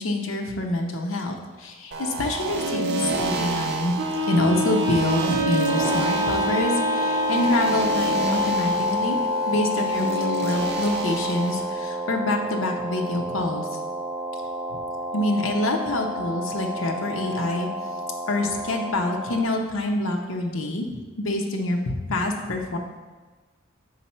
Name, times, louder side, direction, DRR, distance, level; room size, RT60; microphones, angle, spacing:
voice 1, 0.0-3.9 4.3-9.2 9.5-13.7 14.7-14.8 15.1-17.7 18.3-20.9 21.2-22.8, left 2 dB, 80° left, 1 dB, 0.7 m, -26 dB
sound 1, 1.9-11.7, right 3 dB, 50° right, 0.7 m, -30 dB
Wind instrument woodwind instrument, 4.0-8.1, right 2 dB, 80° right, 1.0 m, -28 dB
sound 2, 5.7-19.4, left 2 dB, 20° right, 0.3 m, -28 dB
5.7 x 4.7 x 4.2 m, 1.3 s
head